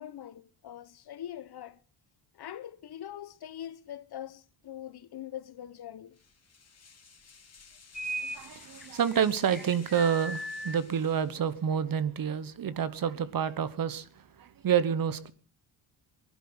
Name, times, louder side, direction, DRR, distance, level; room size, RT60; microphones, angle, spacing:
voice 1, 0.0-1.8 2.3-6.2, left 11 dB, 55° left, 1.0 m, -43 dB
fast pull, 6.1-11.7, left 5 dB, 30° left, 2.7 m, -54 dB
sound 1, 7.9-8.4 8.8-10.8, right 1 dB, ahead, 1.6 m, -37 dB
voice 2, 8.2-15.3, right 8 dB, 45° right, 1.2 m, -29 dB
20.0 x 11.5 x 6.1 m
cardioid pair, 120°, 47 cm